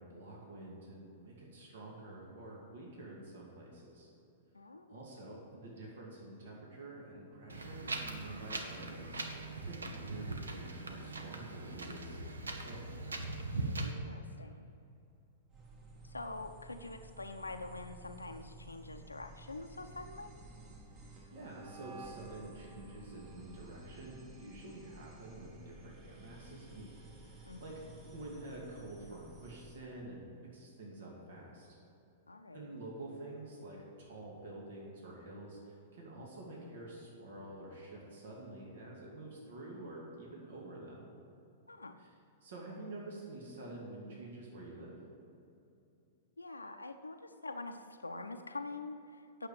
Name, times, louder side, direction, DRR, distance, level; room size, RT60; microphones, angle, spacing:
voice 1, 0.0-4.1 4.9-12.9 21.0-27.7 28.1-30.2 30.5-31.8 32.5-41.1 42.0-42.1 42.4-44.9, right 2 dB, 65° right, -3 dB, 2.3 m, -48 dB
voice 2, 4.5-5.0 5.3-5.4 13.8-14.7 16.0-20.4 27.4-27.8 32.3-32.7 41.7-42.0 46.4-49.5, left 2 dB, 85° left, 6 dB, 0.6 m, -45 dB
Wind, 7.5-13.9, right 2 dB, 80° right, 0.9 m, -41 dB
sound 1, 15.5-29.8, right 2 dB, 30° right, 1.9 m, -53 dB
8.9 x 7.0 x 7.0 m, 2.7 s
figure-of-eight pair, 105°, 0 cm